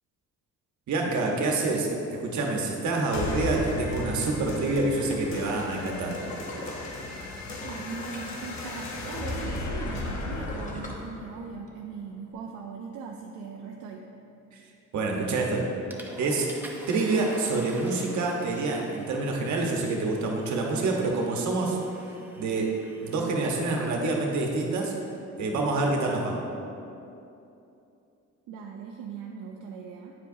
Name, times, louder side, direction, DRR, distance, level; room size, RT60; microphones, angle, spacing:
voice 1, 0.9-6.1 14.9-15.7 16.2-16.5 16.9-21.8 22.4-22.7 23.0-24.9 25.4-26.4, right 3 dB, 70° right, 0 dB, 1.1 m, -27 dB
sound 1, 3.1-12.1, left 2 dB, 65° left, 0.9 m, -36 dB
sound 2, 4.7-8.9 9.2-11.7 12.1-12.2, left 1 dB, 25° left, 0.9 m, -42 dB
voice 2, 7.6-14.0 28.5-30.1, right 5 dB, 85° right, 0 dB, 0.5 m, -39 dB
Water / Toilet flush, 15.2-15.5 15.9-23.8, right 1 dB, 5° right, 0.6 m, -46 dB
9.1 x 4.7 x 2.7 m, 2.7 s
cardioid pair, 90°, 30 cm